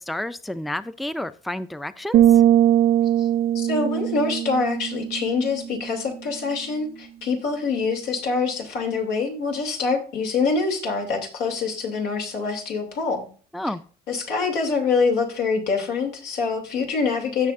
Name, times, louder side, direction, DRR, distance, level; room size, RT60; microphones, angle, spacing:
voice 1, 0.0-2.4 13.5-13.8, left 1 dB, ahead, 14 dB, 0.4 m, -30 dB
sound 1, 2.1-5.8, right 11 dB, 65° right, 0.5 m, -20 dB
voice 2, 3.5-13.3 14.1-17.5, left 4 dB, 90° left, 2 dB, 2.9 m, -25 dB
16.0 x 6.2 x 2.5 m, 0.41 s
cardioid pair, 110°, 17 cm